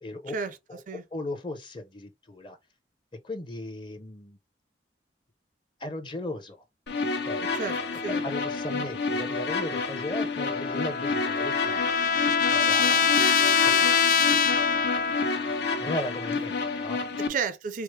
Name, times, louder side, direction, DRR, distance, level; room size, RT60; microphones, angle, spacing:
voice 1, 0.0-0.4 0.7-2.6 3.2-4.4 5.8-6.6 7.3-7.5 8.1-11.8 12.5-13.9 15.8-17.0, left 1 dB, 25° left, 0.7 m, -37 dB
sound 1, 6.9-17.3, left 4 dB, 70° left, 0.8 m, -30 dB
voice 2, 7.5-8.2 8.7-8.8 17.2-17.8, right 5 dB, 50° right, 0.4 m, -32 dB
Trumpet, 10.4-15.6, left 6 dB, 50° left, 0.3 m, -24 dB
4.6 x 2.0 x 3.1 m
head